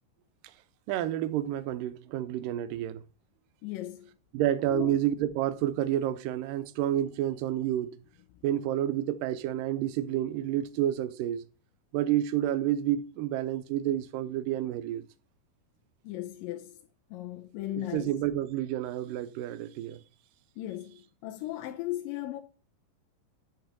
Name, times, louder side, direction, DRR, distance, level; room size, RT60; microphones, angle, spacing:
voice 1, 0.9-3.0 4.3-8.0 8.4-11.4 11.9-15.0 17.8-20.0, right 12 dB, 80° right, 2.3 m, -29 dB
voice 2, 3.6-4.1 4.7-5.0 16.0-16.8 17.1-18.1 20.6-22.4, left 15 dB, 85° left, 2.3 m, -36 dB
7.1 x 4.9 x 6.1 m
omnidirectional pair, 4.0 m